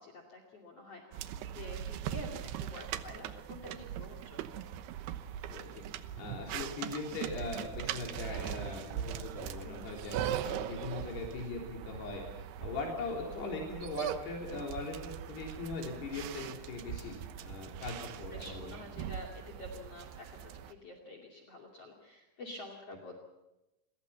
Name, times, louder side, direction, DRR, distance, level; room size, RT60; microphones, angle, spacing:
voice 1, 0.0-4.7 9.6-10.1 18.3-23.1, left 2 dB, 40° left, 1 dB, 3.4 m, -49 dB
sound 1, 1.1-20.7, right 10 dB, 85° right, 3.1 m, -40 dB
voice 2, 5.5-5.8 6.2-12.2 12.6-18.7, left 3 dB, 85° left, 0 dB, 5.7 m, -40 dB
29.0 x 22.5 x 5.7 m, 0.97 s
omnidirectional pair, 4.6 m